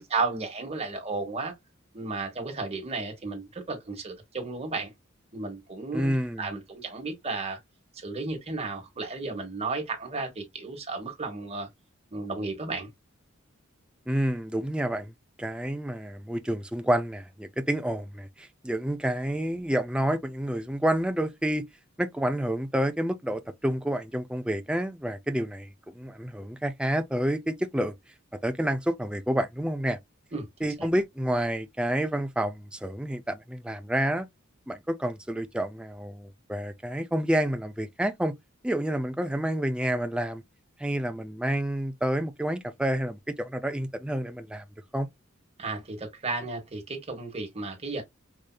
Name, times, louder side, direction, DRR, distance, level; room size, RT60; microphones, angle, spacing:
voice 1, 0.0-1.5 1.9-4.9 5.3-7.6 7.9-11.7 12.1-12.9 30.3-30.5 30.8-30.9 45.6-48.0, right 3 dB, 30° right, 1.2 m, -33 dB
voice 2, 5.9-6.5 14.1-15.1 15.4-21.7 22.0-27.9 28.4-30.0 30.6-34.3 34.7-38.3 38.6-40.4 40.8-44.6 44.9-45.1, right 1 dB, 5° right, 0.4 m, -29 dB
4.8 x 2.7 x 2.2 m
head